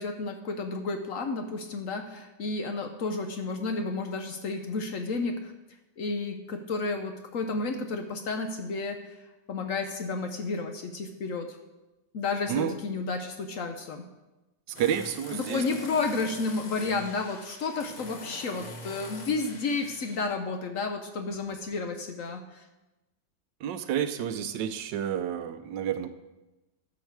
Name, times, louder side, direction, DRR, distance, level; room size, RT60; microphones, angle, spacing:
voice 1, 0.0-5.5 6.0-9.1 9.5-11.6 12.1-14.0 15.3-22.6, left 3 dB, 60° left, 6 dB, 0.9 m, -31 dB
sound 1, 14.7-20.3, left 2 dB, 35° left, 0.7 m, -44 dB
voice 2, 14.7-15.6 23.6-26.1, right 9 dB, 85° right, 10 dB, 1.3 m, -30 dB
12.5 x 6.4 x 4.7 m, 1.0 s
omnidirectional pair, 1.9 m